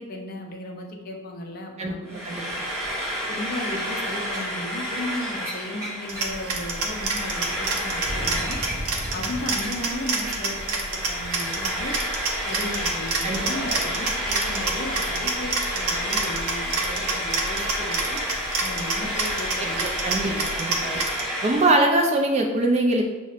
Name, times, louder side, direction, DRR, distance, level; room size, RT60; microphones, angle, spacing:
voice 1, 0.0-2.9 3.3-8.6 9.1-12.0 12.5-18.2 18.6-19.9 20.2-21.0, left 1 dB, 40° left, 2 dB, 0.5 m, -35 dB
Frying (food), 2.1-21.8, equal, 15° right, 0.9 m, -30 dB
sound 1, 6.1-21.2, right 3 dB, 75° right, 0.5 m, -29 dB
sound 2, 8.0-10.0 10.3-10.5 10.7-10.8 11.8-11.9 13.3-13.8, equal, 25° left, 1.3 m, -35 dB
voice 2, 19.8-21.0 21.4-23.0, right 2 dB, 30° right, 2 dB, 0.3 m, -22 dB
5.7 x 2.1 x 2.4 m, 1.2 s
head